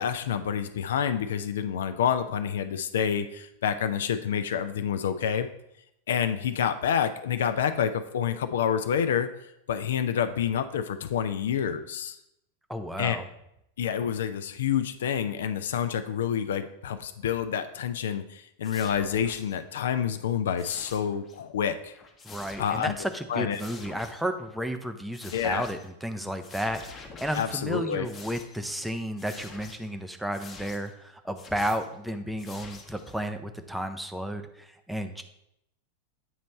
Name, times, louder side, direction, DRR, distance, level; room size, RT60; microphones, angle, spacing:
voice 1, 0.0-5.5 6.1-9.3 9.7-12.2 13.0-13.2 13.8-21.9 22.6-22.9 23.3-23.6 25.3-25.7 27.3-28.1, left 8 dB, 60° left, 10 dB, 0.4 m, -28 dB
voice 2, 12.7-13.3 22.2-35.2, equal, 5° right, 7 dB, 0.5 m, -33 dB
sound 1, 18.6-19.6 20.6-21.4 21.8-23.2 23.5-24.3 25.1-25.9 26.4-27.7 28.0-28.7 29.2-29.9 30.3-30.9 31.4-31.9 32.4-33.2, left 4 dB, 20° left, 0.8 m, -47 dB
8.1 x 3.1 x 4.1 m, 0.80 s
figure-of-eight pair, 90°, 0 cm